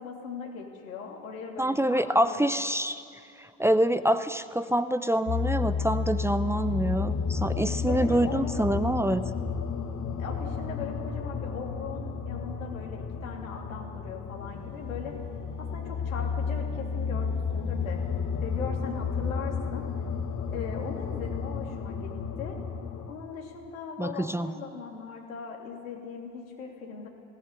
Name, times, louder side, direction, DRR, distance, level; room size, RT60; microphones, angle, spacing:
voice 1, 0.0-2.5 7.9-8.7 10.2-15.1 15.6-18.0 18.4-19.9 20.5-22.1 22.4-22.6 23.1-27.1, left 5 dB, 85° left, -1 dB, 3.3 m, -39 dB
voice 2, 1.6-3.0 3.4-9.3 24.0-24.6, right 1 dB, 5° right, 11 dB, 0.8 m, -26 dB
sound 1, 5.3-23.1, left 5 dB, 45° left, 1.8 m, -32 dB
19.5 x 17.0 x 9.5 m, 2.4 s
hypercardioid pair, 60°, 40 cm